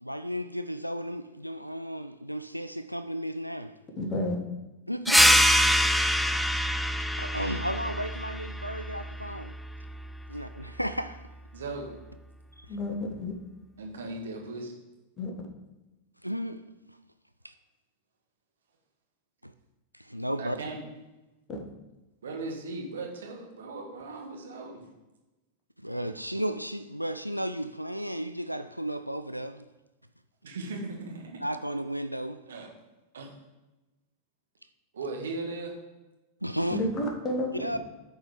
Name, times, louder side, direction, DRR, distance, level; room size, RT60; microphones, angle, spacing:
voice 1, 0.0-3.7 4.9-5.2 6.3-6.4 7.2-9.5 10.3-11.2 16.2-16.6 19.4-19.5 20.1-20.6 25.8-29.6 31.4-32.4 36.4-36.8 37.6-37.8, equal, 90° right, 0.3 m, -33 dB
voice 2, 4.0-4.4 12.7-13.3 15.2-15.3 21.5-21.6 36.7-37.5, left 1 dB, 25° left, 1.6 m, -30 dB
voice 3, 4.9-5.4 11.5-11.9 13.8-14.7 20.4-20.8 22.2-24.9 30.4-31.4 32.5-32.7 33.1-33.3 34.9-35.7, right 3 dB, 65° right, 1.5 m, -38 dB
sound 1, 5.1-10.2, equal, ahead, 0.4 m, -25 dB
10.0 x 4.5 x 5.0 m
figure-of-eight pair, 90°, 0 cm